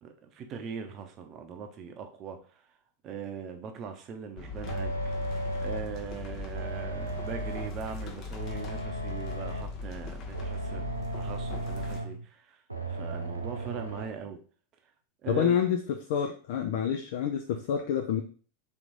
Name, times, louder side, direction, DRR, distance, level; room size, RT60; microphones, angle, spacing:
voice 1, 0.0-2.6 3.0-4.9 5.6-10.9 11.2-12.6 12.9-14.4 15.2-15.6, right 6 dB, 35° right, 0.7 m, -40 dB
sound 1, 4.4-12.0, left 3 dB, 35° left, 0.9 m, -39 dB
sound 2, 4.7-6.0 6.5-7.9 8.4-9.8 10.3-12.3 12.7-14.1, right 2 dB, 85° right, 0.6 m, -35 dB
voice 2, 15.3-18.2, left 8 dB, 50° left, 0.4 m, -28 dB
3.5 x 3.1 x 3.9 m
figure-of-eight pair, 90°, 0 cm